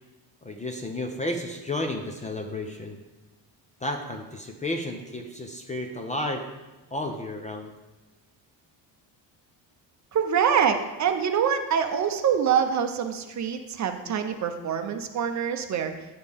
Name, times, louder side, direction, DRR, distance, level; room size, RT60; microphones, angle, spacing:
voice 1, 0.4-3.0 3.8-6.5 6.9-7.7, left 1 dB, 15° left, 4 dB, 0.5 m, -32 dB
voice 2, 10.1-16.1, right 7 dB, 40° right, 7 dB, 0.6 m, -25 dB
9.5 x 7.4 x 3.4 m, 1.1 s
cardioid pair, 160°, 44 cm